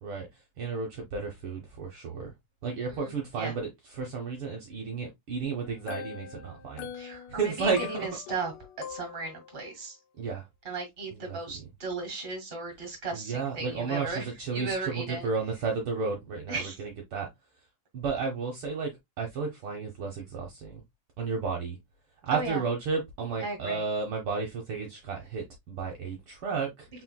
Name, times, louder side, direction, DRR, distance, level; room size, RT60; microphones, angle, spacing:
voice 1, 0.0-2.3 2.6-6.9 7.3-8.0 10.2-10.5 11.1-11.7 13.1-17.3 17.9-18.9 19.2-20.8 21.2-21.8 22.2-26.9, right 4 dB, 80° right, 1.2 m, -33 dB
voice 2, 2.9-3.5 6.9-8.5 8.9-10.0 10.6-14.2 14.5-15.3 16.5-16.8 22.3-22.6 23.4-23.8, right 4 dB, 25° right, 1.3 m, -35 dB
sound 1, 5.6-9.6, left 8 dB, 85° left, 2.4 m, -43 dB
4.4 x 4.3 x 2.2 m
omnidirectional pair, 3.8 m